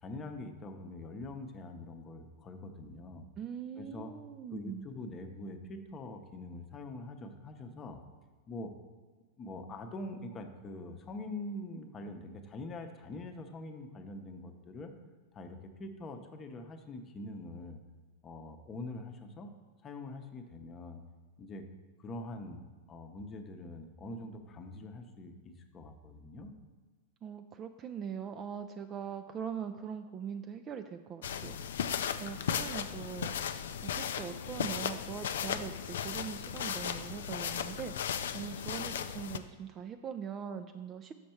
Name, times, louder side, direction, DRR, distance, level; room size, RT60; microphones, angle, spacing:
voice 1, 0.0-3.3 3.8-4.1 4.5-8.0 8.5-8.7 9.4-14.9 15.3-17.8 18.2-19.5 19.8-21.0 21.4-21.6 22.0-26.5, left 2 dB, 30° left, 6 dB, 0.8 m, -44 dB
voice 2, 3.4-4.9 27.2-31.6 32.2-33.6 33.8-41.1, right 7 dB, 30° right, 7 dB, 0.3 m, -42 dB
sound 1, 31.2-39.4, left 8 dB, 70° left, 0.3 m, -36 dB
6.6 x 5.3 x 4.3 m, 1.5 s
hypercardioid pair, 100°, 0 cm